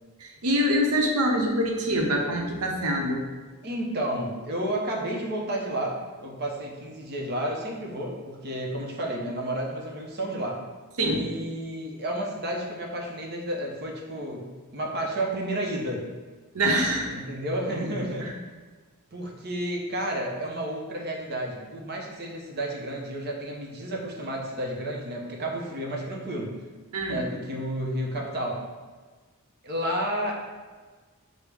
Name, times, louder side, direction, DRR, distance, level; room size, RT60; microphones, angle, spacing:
voice 1, 0.2-3.2 11.0-11.2 16.5-17.1 18.2-18.3 26.9-27.2, equal, 85° right, 1 dB, 0.7 m, -25 dB
voice 2, 3.6-10.6 11.0-16.0 17.1-18.3 19.1-26.6 27.1-28.6 29.6-30.6, right 1 dB, 45° right, -1 dB, 0.7 m, -31 dB
6.2 x 2.1 x 3.4 m, 1.4 s
head